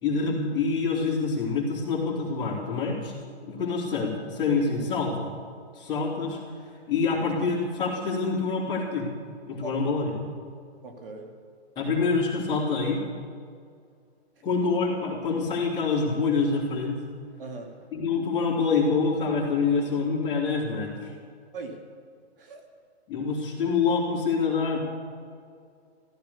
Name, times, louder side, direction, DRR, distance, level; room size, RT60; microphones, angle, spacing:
voice 1, 0.0-3.1 3.4-5.3 5.7-6.4 6.9-9.1 9.5-10.0 11.8-13.0 14.4-17.0 17.9-20.9 23.1-24.8, left 4 dB, 15° left, -6 dB, 2.6 m, -26 dB
voice 2, 9.6-10.0 10.8-11.3 14.4-14.5 17.4-17.8 21.5-21.8 22.4-22.6, right 3 dB, 55° right, 3 dB, 2.4 m, -40 dB
15.0 x 12.5 x 6.9 m, 2.3 s
hypercardioid pair, 165°, 33 cm